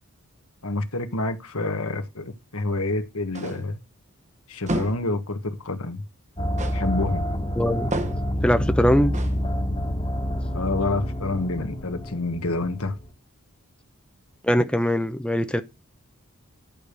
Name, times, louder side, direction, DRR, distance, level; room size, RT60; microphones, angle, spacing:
voice 1, 0.6-3.8 4.5-6.0 6.7-7.2 10.5-13.0, left 2 dB, 75° left, 1.6 m, -28 dB
sound 1, 3.3-3.8 4.7-5.1 6.6-6.9 7.9-8.4 9.1-9.4, right 2 dB, 35° right, 1.2 m, -31 dB
sound 2, 6.4-13.1, equal, 25° left, 1.6 m, -28 dB
voice 2, 7.6-8.0 8.4-9.1 14.4-15.6, equal, 5° left, 0.7 m, -21 dB
11.0 x 5.0 x 6.9 m
head